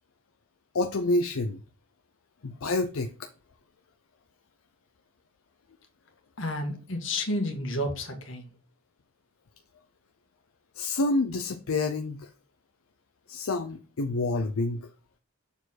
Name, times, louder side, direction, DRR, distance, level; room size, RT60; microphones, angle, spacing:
voice 1, 0.7-1.6 2.4-3.1 10.7-12.3 13.3-14.9, left 2 dB, 80° left, 0.6 m, -28 dB
voice 2, 6.4-8.5, left 1 dB, 60° left, 1.7 m, -31 dB
6.9 x 4.5 x 4.1 m
head